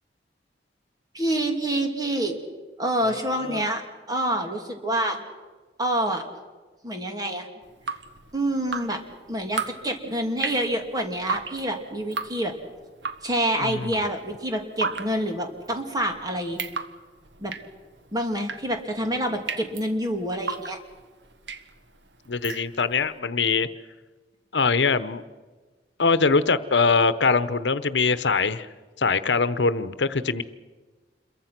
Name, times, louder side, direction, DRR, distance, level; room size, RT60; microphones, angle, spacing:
voice 1, 1.1-2.4 2.8-5.2 5.8-6.2 6.8-7.5 8.3-9.0 9.3-12.5 13.2-16.6 17.4-17.5 18.1-20.8, right 1 dB, 20° right, 4 dB, 2.9 m, -27 dB
voice 2, 3.1-3.6 13.6-13.9 22.3-23.7 24.5-25.2 26.0-28.7 29.0-30.4, left 4 dB, 85° left, 14 dB, 1.0 m, -23 dB
Drip, 7.6-23.1, right 5 dB, 85° right, 1.4 m, -36 dB
28.0 x 23.0 x 6.0 m, 1.3 s
head